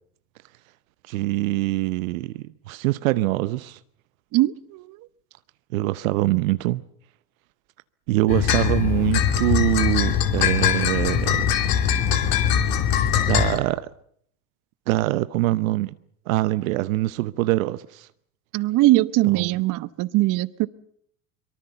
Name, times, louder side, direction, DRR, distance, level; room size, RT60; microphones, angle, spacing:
voice 1, 1.1-3.8 5.7-6.8 8.1-11.5 13.3-13.9 14.9-16.0 16.3-18.1 19.3-19.6, right 18 dB, 70° right, 0.9 m, -24 dB
voice 2, 4.3-5.0 18.5-20.7, right 17 dB, 45° right, 1.0 m, -21 dB
sound 1, 8.3-13.6, left 9 dB, 55° left, 3.0 m, -21 dB
24.0 x 23.0 x 7.0 m
hypercardioid pair, 85°, 43 cm